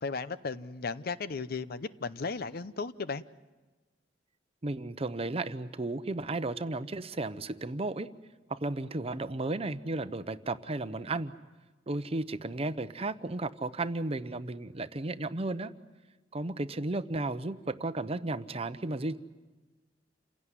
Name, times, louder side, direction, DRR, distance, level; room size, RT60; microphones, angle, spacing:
voice 1, 0.0-3.2, left 4 dB, 55° left, 15 dB, 0.7 m, -35 dB
voice 2, 4.6-8.1 8.5-11.3 11.9-15.7 16.3-19.2, right 2 dB, 35° right, 12 dB, 0.8 m, -34 dB
28.5 x 17.0 x 9.8 m, 1.2 s
head